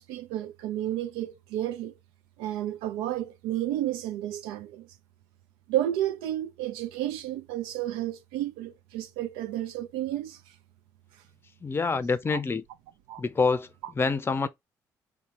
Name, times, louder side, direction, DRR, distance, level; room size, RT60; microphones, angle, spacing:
voice 1, 0.0-1.9 2.4-4.9 5.7-10.4 12.3-12.4 13.1-13.2, right 13 dB, 70° right, 0.4 m, -31 dB
voice 2, 11.6-12.6 13.2-13.7 14.0-14.5, left 4 dB, 25° left, 0.5 m, -26 dB
3.6 x 2.9 x 3.5 m
hypercardioid pair, 45°, 9 cm